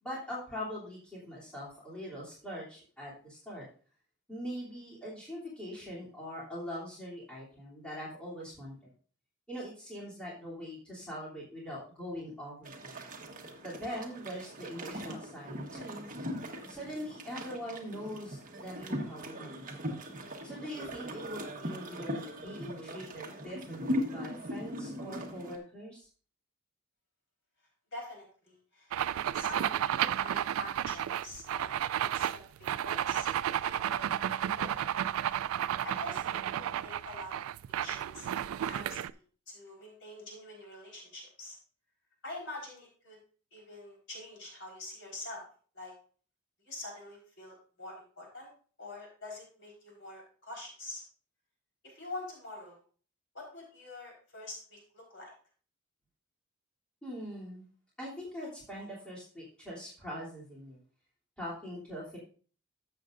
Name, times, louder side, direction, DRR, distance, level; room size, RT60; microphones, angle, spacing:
voice 1, 0.0-3.6 4.3-8.9 9.5-13.0 13.6-16.1 16.7-19.7 20.4-26.1 57.0-57.7 58.0-60.8 61.4-62.2, equal, 5° left, -8 dB, 3.0 m, -42 dB
sound 1, 12.6-25.6, equal, 40° right, 1.4 m, -39 dB
voice 2, 27.9-29.0 29.3-31.8 32.1-32.3 32.6-33.3 33.6-35.0 35.8-39.2 39.5-41.6 42.2-43.2 43.5-45.4 45.7-45.9 46.6-48.5 48.8-51.0 51.8-52.8 53.3-55.3, left 2 dB, 60° left, -2 dB, 4.3 m, -46 dB
sound 2, 28.9-39.1, right 10 dB, 85° right, 0.3 m, -32 dB
12.5 x 7.5 x 2.6 m, 0.42 s
head